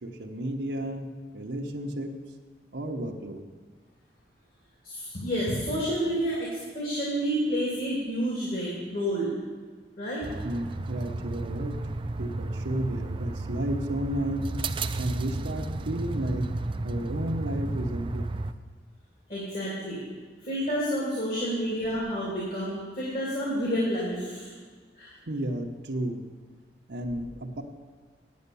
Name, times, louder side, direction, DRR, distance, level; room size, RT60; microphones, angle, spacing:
voice 1, 0.0-2.1 2.7-3.4 10.4-11.8 12.2-14.6 15.0-16.5 16.8-18.4 25.3-26.3 26.9-27.6, right 1 dB, 90° right, 1 dB, 1.0 m, -32 dB
voice 2, 4.8-9.4 10.0-10.3 19.3-20.0 20.4-24.5 25.0-25.1, equal, 55° left, -6 dB, 2.9 m, -29 dB
sound 1, 10.2-18.5, right 2 dB, 30° right, 0.4 m, -33 dB
9.5 x 8.8 x 6.9 m, 1.5 s
head